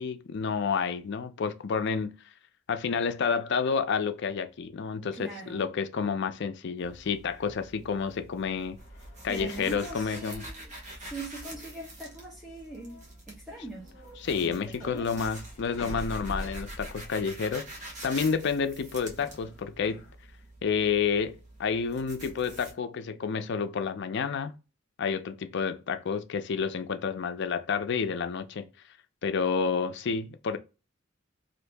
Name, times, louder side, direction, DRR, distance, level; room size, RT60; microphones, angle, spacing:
voice 1, 0.0-2.1 2.7-8.8 9.2-10.4 14.2-20.0 20.6-24.5 25.0-28.7 29.2-30.6, left 5 dB, 60° left, 0.4 m, -30 dB
voice 2, 5.1-5.7 9.3-10.7 11.0-13.0 13.3-13.9 14.4-15.1, right 2 dB, ahead, 0.9 m, -41 dB
sound 1, 6.8-22.7, right 1 dB, 40° right, 0.9 m, -46 dB
sound 2, 8.8-10.5 11.7-12.3 12.5-13.2 13.5-17.5 19.2-20.1, equal, 40° left, 1.2 m, -44 dB
2.7 x 2.6 x 3.4 m
head